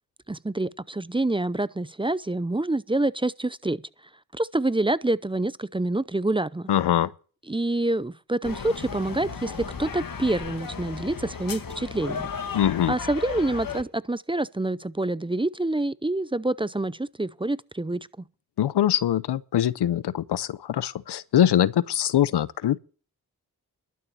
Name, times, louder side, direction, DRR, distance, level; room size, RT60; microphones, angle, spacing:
voice 1, 0.3-3.8 4.3-6.7 7.5-12.6 12.9-18.1, right 2 dB, 15° right, 0.6 m, -27 dB
voice 2, 6.7-7.1 12.5-13.0 18.6-22.8, left 11 dB, 85° left, 0.7 m, -23 dB
sound 1, 8.4-13.8, left 6 dB, 55° left, 1.7 m, -35 dB
12.0 x 6.9 x 8.4 m
cardioid pair, 45°, 39 cm